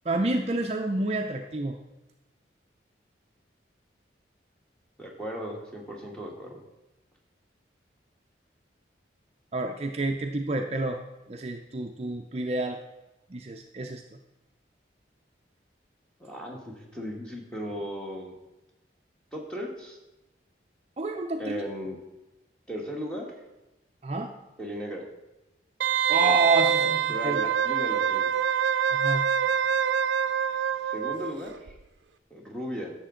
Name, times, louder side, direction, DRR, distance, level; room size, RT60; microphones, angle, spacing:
voice 1, 0.0-1.8 9.5-11.0 11.3-12.8 13.3-14.0 21.0-21.6 24.0-24.3 26.1-27.4 28.9-29.3, right 2 dB, 35° right, 4 dB, 0.5 m, -29 dB
voice 2, 5.0-6.6 16.2-18.3 19.3-20.0 21.4-22.0 22.7-23.3 24.6-25.0 26.8-28.3 30.9-31.7 32.3-32.9, equal, 5° left, -1 dB, 1.4 m, -36 dB
Wind instrument woodwind instrument, 25.8-31.4 31.7-31.8, right 8 dB, 85° right, 0.5 m, -25 dB
11.0 x 7.0 x 3.8 m, 1.0 s
head